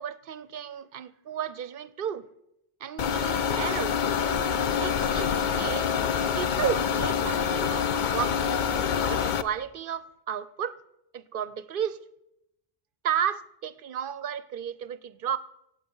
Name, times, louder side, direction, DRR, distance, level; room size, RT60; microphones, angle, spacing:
voice 1, 0.0-2.3 2.8-4.0 4.8-5.9 6.4-8.5 9.1-10.8 11.1-12.0 13.0-15.4, right 8 dB, 65° right, 0.7 m, -33 dB
sound 1, 3.0-9.4, left 7 dB, 55° left, 0.7 m, -26 dB
16.5 x 8.0 x 5.4 m
omnidirectional pair, 1.0 m